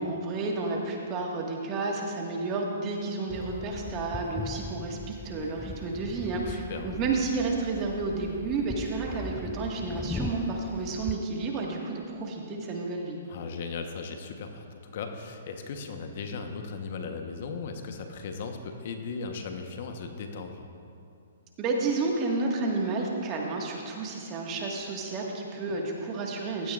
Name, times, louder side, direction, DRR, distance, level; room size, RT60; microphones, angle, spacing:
voice 1, 0.0-13.2 21.6-26.7, right 3 dB, 30° right, -1 dB, 1.7 m, -31 dB
sound 1, 3.3-11.2, left 3 dB, 10° left, 0.3 m, -40 dB
voice 2, 6.5-7.0 13.3-20.7, left 4 dB, 55° left, 5 dB, 1.1 m, -37 dB
15.5 x 12.0 x 2.5 m, 2.5 s
hypercardioid pair, 135°, 0 cm